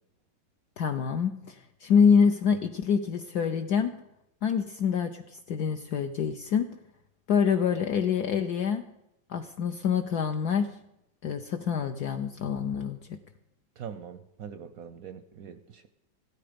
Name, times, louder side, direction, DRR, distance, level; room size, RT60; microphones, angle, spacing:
voice 1, 0.8-3.9 4.4-6.7 7.3-8.8 9.3-10.7 11.2-13.2, left 6 dB, 65° left, 6 dB, 1.1 m, -26 dB
voice 2, 13.8-15.9, right 8 dB, 70° right, 11 dB, 0.9 m, -43 dB
15.5 x 13.0 x 5.1 m, 0.87 s
omnidirectional pair, 2.1 m